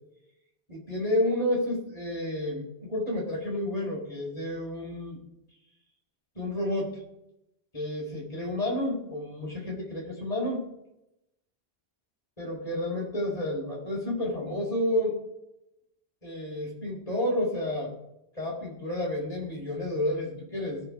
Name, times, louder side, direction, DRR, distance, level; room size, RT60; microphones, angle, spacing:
voice 1, 0.7-5.2 6.3-7.0 7.7-10.7 12.4-15.2 16.2-17.9 18.3-20.8, left 1 dB, 35° left, -2 dB, 4.4 m, -30 dB
18.0 x 6.3 x 4.9 m, 0.85 s
omnidirectional pair, 1.1 m